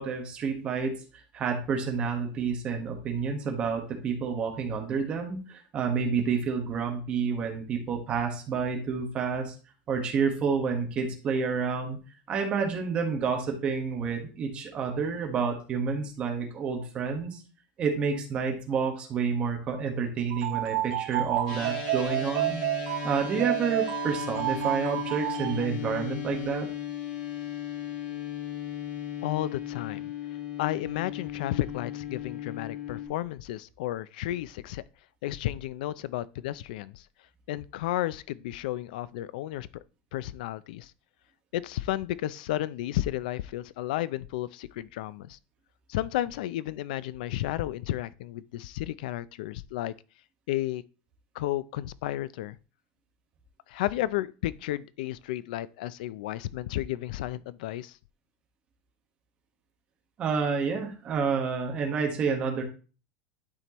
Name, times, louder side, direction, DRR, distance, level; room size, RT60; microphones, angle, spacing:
voice 1, 0.0-9.5 9.9-12.0 12.3-17.4 17.8-22.6 23.0-26.7 60.2-62.6, right 5 dB, 25° right, 1.3 m, -29 dB
sound 1, 20.3-25.7, right 15 dB, 55° right, 0.6 m, -30 dB
sound 2, 21.5-33.1, left 10 dB, 85° left, 3.4 m, -36 dB
voice 2, 29.2-30.1 30.6-34.8 35.2-37.0 37.5-39.8 40.1-40.9 41.5-45.4 45.9-49.9 50.5-50.8 51.3-52.6 53.7-58.0, left 14 dB, 70° left, 0.4 m, -32 dB
11.5 x 4.5 x 3.0 m
supercardioid pair, 180°, 5 cm